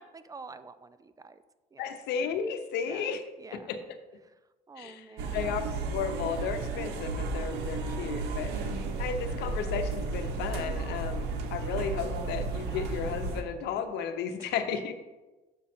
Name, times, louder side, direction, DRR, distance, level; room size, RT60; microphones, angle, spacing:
voice 1, 0.0-1.4 1.7-2.0 2.8-3.8 4.7-5.5 14.4-14.5, right 4 dB, 20° right, 13 dB, 0.4 m, -48 dB
voice 2, 1.8-3.2 3.5-4.0 4.8-5.0 5.3-5.6 5.9-8.5 9.0-14.9, left 6 dB, 80° left, 8 dB, 0.8 m, -34 dB
sound 1, 5.2-13.4, right 3 dB, 85° right, 0.9 m, -33 dB
6.8 x 6.1 x 4.3 m, 1.1 s
cardioid pair, 110°, 17 cm